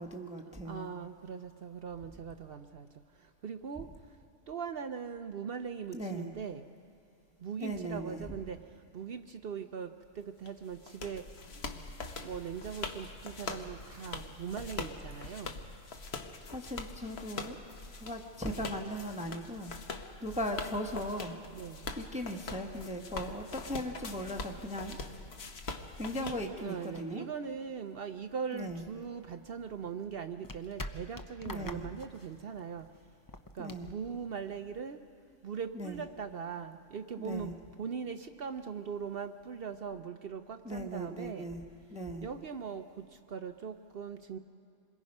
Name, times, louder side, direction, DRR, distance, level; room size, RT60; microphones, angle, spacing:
voice 1, 0.0-0.9 5.9-6.3 7.6-8.2 16.4-17.6 18.0-21.4 22.0-25.0 26.0-27.3 28.5-28.8 31.4-31.8 33.6-33.9 35.7-36.0 37.2-37.5 40.6-41.6 41.9-42.3, equal, 5° right, 3 dB, 1.0 m, -38 dB
voice 2, 0.6-2.9 3.4-3.9 4.5-6.6 7.4-8.6 8.9-11.2 12.2-15.5 21.5-21.9 26.2-32.9 33.5-35.0 35.4-37.5 37.8-41.5 42.2-42.8 43.3-44.4, right 6 dB, 55° right, 9 dB, 0.7 m, -40 dB
sound 1, 10.5-27.0, left 4 dB, 50° left, 1.2 m, -43 dB
sound 2, 29.0-34.9, left 1 dB, 35° left, 0.3 m, -47 dB
27.0 x 22.0 x 5.4 m, 2.5 s
omnidirectional pair, 1.5 m